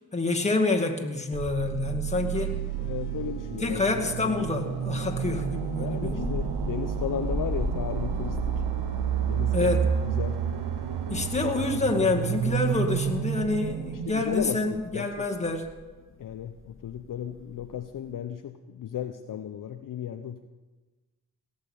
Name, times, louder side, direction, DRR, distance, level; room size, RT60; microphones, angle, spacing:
voice 1, 0.1-2.6 3.6-6.2 9.5-9.9 11.1-15.7, left 3 dB, 15° left, 1 dB, 2.0 m, -27 dB
sound 1, 1.3-15.1, right 9 dB, 75° right, 0.8 m, -30 dB
sound 2, 2.3-13.8, left 5 dB, 90° left, 0.9 m, -47 dB
Thunder, 2.3-18.1, left 2 dB, 30° left, 1.9 m, -39 dB
voice 2, 2.8-4.0 5.8-8.6 9.3-9.8 10.0-10.4 14.0-15.3 16.2-20.5, left 9 dB, 55° left, 7 dB, 0.7 m, -35 dB
17.5 x 7.2 x 7.1 m, 1.2 s
cardioid pair, 65°, 39 cm